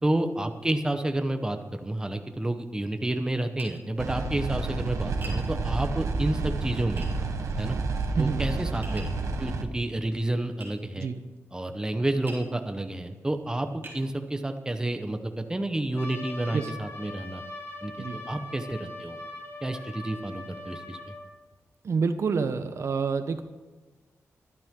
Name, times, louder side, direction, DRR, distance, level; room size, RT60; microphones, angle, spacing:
voice 1, 0.0-7.1 7.6-7.8 8.2-9.1 9.4-11.1 11.5-17.4 17.8-19.2 19.6-21.1, right 1 dB, 15° right, 7 dB, 1.1 m, -30 dB
Tap, 3.6-3.8 5.2-5.4 7.0-7.1 8.8-9.2 10.6-10.8 12.3-12.5 13.2-13.3 13.8-14.0, right 2 dB, 45° right, 3.8 m, -42 dB
sound 1, 4.0-9.6, right 3 dB, 90° right, 1.3 m, -30 dB
Trumpet, 16.0-21.3, left 2 dB, 55° left, 2.8 m, -41 dB
voice 2, 21.8-23.4, right 5 dB, 65° right, 9 dB, 1.0 m, -27 dB
22.5 x 12.5 x 3.8 m, 1.2 s
wide cardioid pair, 130°, 5 cm